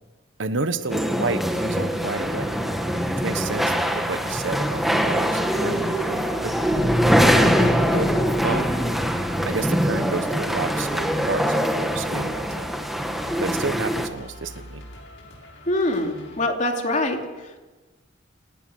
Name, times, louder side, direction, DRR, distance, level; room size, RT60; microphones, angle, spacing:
voice 1, 0.4-2.6 3.1-6.7 7.9-8.8 9.4-12.7 13.4-14.8, right 3 dB, 75° right, 12 dB, 1.2 m, -31 dB
sound 1, 0.8-16.4, left 1 dB, 80° left, 7.1 m, -45 dB
sound 2, 0.9-14.1, equal, ahead, 1.7 m, -23 dB
sound 3, 6.7-10.4, equal, 15° left, 1.4 m, -27 dB
voice 2, 7.4-7.8 15.7-17.6, left 1 dB, 40° left, 3 dB, 2.9 m, -25 dB
29.5 x 17.5 x 6.3 m, 1.2 s
head